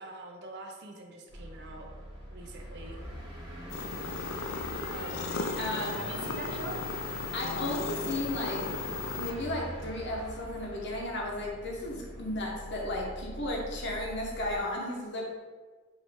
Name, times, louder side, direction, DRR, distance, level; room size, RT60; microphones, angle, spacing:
voice 1, 0.0-1.9 2.3-3.0 4.9-5.3 5.7-6.9, right 2 dB, 55° right, 2 dB, 0.6 m, -43 dB
sound 1, 1.3-14.6, equal, 25° right, 1.1 m, -43 dB
sound 2, 3.7-9.3, left 4 dB, 70° left, 0.4 m, -36 dB
voice 2, 5.6-6.0 7.3-8.7 9.1-15.2, left 1 dB, 55° left, -1 dB, 0.8 m, -34 dB
4.8 x 2.6 x 3.4 m, 1.4 s
head